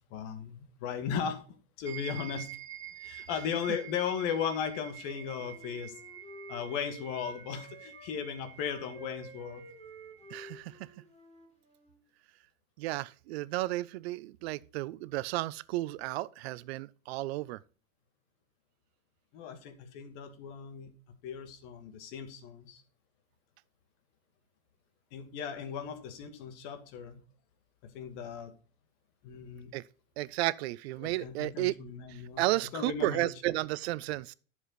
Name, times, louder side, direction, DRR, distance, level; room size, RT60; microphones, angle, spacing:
voice 1, 0.1-1.4 1.8-2.5 3.0-5.9 6.5-9.7 19.3-20.9 21.2-22.8 25.1-27.2 27.8-28.5 29.2-29.7 31.0-32.5 32.7-33.3, left 7 dB, 45° left, 2.3 m, -37 dB
sound 1, 1.8-10.5, right 13 dB, 10° right, 3.5 m, -48 dB
Wind instrument woodwind instrument, 5.0-8.1 8.5-12.0, equal, 15° left, 3.9 m, -51 dB
voice 2, 10.3-10.9 12.8-17.6 29.7-29.8 30.2-31.7 32.4-34.3, right 18 dB, 50° right, 0.7 m, -33 dB
11.0 x 7.3 x 4.1 m
hypercardioid pair, 100°, 40 cm